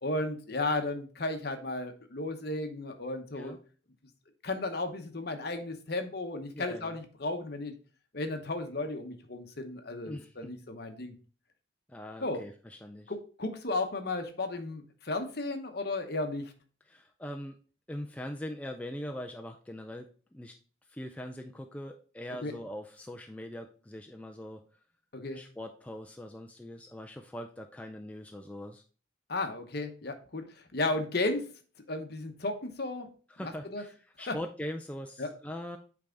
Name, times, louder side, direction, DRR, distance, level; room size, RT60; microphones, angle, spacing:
voice 1, 0.0-3.6 4.4-7.7 8.1-11.1 12.2-12.4 13.1-16.5 22.4-22.5 25.1-25.4 29.3-31.4 31.9-33.1 33.4-33.8 34.2-34.4 35.2-35.3, left 2 dB, 50° left, 6 dB, 0.9 m, -34 dB
voice 2, 6.5-6.9 10.1-10.5 11.9-13.1 16.9-17.6 17.9-20.6 20.9-24.6 25.3-28.8 33.3-35.8, left 1 dB, 5° left, 3 dB, 0.3 m, -42 dB
8.5 x 3.5 x 3.8 m, 0.39 s
head